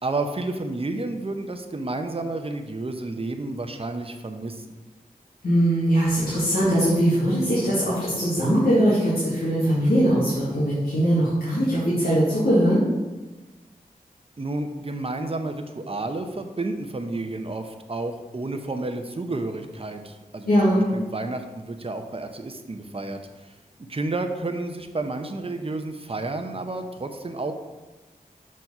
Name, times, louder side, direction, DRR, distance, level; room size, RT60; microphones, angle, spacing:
voice 1, 0.0-4.8 14.4-23.5 23.9-27.5, right 2 dB, 40° right, 6 dB, 0.7 m, -31 dB
voice 2, 5.4-12.8 20.5-20.8, equal, 85° left, -10 dB, 1.9 m, -21 dB
6.0 x 4.6 x 5.4 m, 1.2 s
wide cardioid pair, 45°, 15 cm